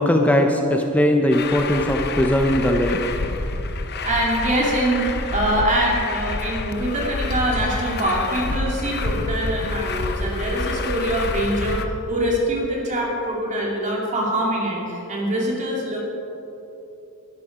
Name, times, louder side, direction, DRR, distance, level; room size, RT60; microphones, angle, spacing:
voice 1, 0.0-3.0, left 1 dB, 5° left, 3 dB, 0.6 m, -19 dB
Truck, 1.3-11.9, left 3 dB, 50° left, 0.8 m, -28 dB
voice 2, 4.0-11.8 12.1-16.0, right 1 dB, 35° right, -3 dB, 2.6 m, -24 dB
12.5 x 12.0 x 5.0 m, 3.0 s
head